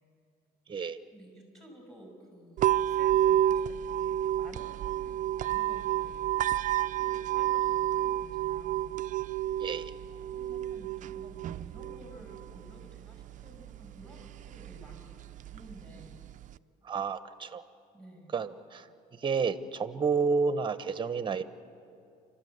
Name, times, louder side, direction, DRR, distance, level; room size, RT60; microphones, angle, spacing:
voice 1, 1.1-8.9 10.3-15.0 15.5-16.2 17.9-18.3, equal, 5° left, 2 dB, 5.8 m, -52 dB
sound 1, 2.6-16.6, right 12 dB, 50° right, 0.4 m, -31 dB
voice 2, 9.6-9.9 16.8-17.6 18.3-18.9 19.1-21.4, right 5 dB, 30° right, 12 dB, 0.9 m, -30 dB
29.0 x 13.0 x 8.0 m, 2.6 s
cardioid pair, 110°, 17 cm